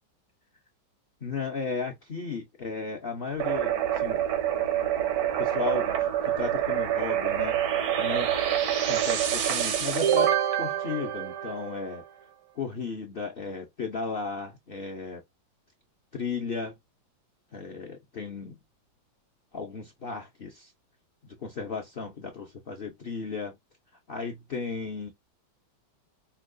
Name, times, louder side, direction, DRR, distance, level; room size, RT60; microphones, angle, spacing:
voice 1, 1.2-4.2 5.4-7.7 8.0-8.3 8.8-12.0 12.5-15.2 16.1-16.8 17.5-18.6 19.5-20.7 21.2-23.6 24.1-25.1, left 4 dB, 75° left, 0.5 m, -35 dB
sound 1, 3.4-12.0, right 10 dB, 90° right, 1.7 m, -26 dB
5.6 x 2.2 x 2.6 m
omnidirectional pair, 2.1 m